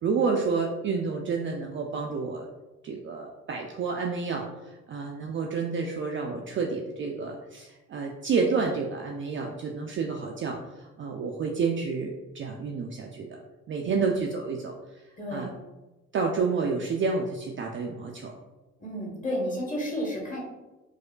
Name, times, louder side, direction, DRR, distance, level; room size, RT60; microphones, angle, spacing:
voice 1, 0.0-2.5 2.8-13.4 13.7-14.7 15.3-15.5 16.1-18.3, right 4 dB, 35° right, 0 dB, 0.4 m, -29 dB
voice 2, 13.8-14.1 15.2-15.5 18.8-20.4, equal, 20° left, -2 dB, 1.2 m, -32 dB
4.6 x 2.1 x 2.3 m, 1.1 s
figure-of-eight pair, 45°, 38 cm